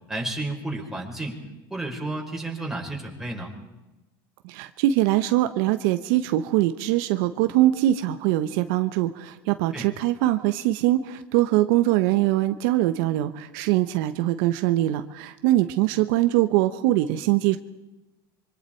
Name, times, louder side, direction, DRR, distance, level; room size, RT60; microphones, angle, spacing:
voice 1, 0.1-1.4 1.7-3.5 9.7-9.9 15.9-16.0, right 2 dB, 5° right, -1 dB, 5.0 m, -32 dB
voice 2, 4.4-17.6, right 15 dB, 70° right, 9 dB, 1.0 m, -22 dB
25.5 x 24.5 x 4.6 m, 1.0 s
supercardioid pair, 115°, 12 cm